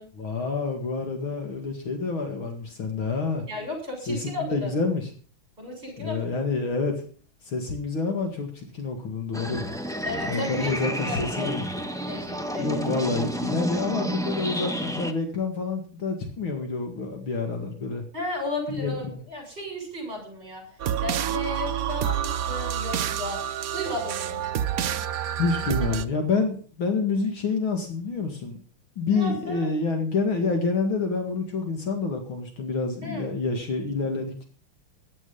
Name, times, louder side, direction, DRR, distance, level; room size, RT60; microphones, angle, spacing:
voice 1, 0.1-3.4 4.1-5.1 6.0-7.0 7.4-9.6 10.3-11.8 12.6-18.0 18.7-19.2 25.4-28.6 29.0-34.4, left 4 dB, 70° left, 4 dB, 2.8 m, -28 dB
voice 2, 3.5-4.7 5.6-6.4 10.0-11.5 12.1-12.9 18.1-20.6 21.0-23.4 23.7-24.4 29.1-29.7 33.0-33.4, left 2 dB, 25° right, 2 dB, 7.3 m, -34 dB
sound 1, 9.3-15.1, equal, ahead, 0.8 m, -30 dB
sound 2, 20.8-26.0, right 10 dB, 60° right, 0.9 m, -28 dB
15.5 x 10.5 x 5.5 m, 0.42 s
omnidirectional pair, 2.4 m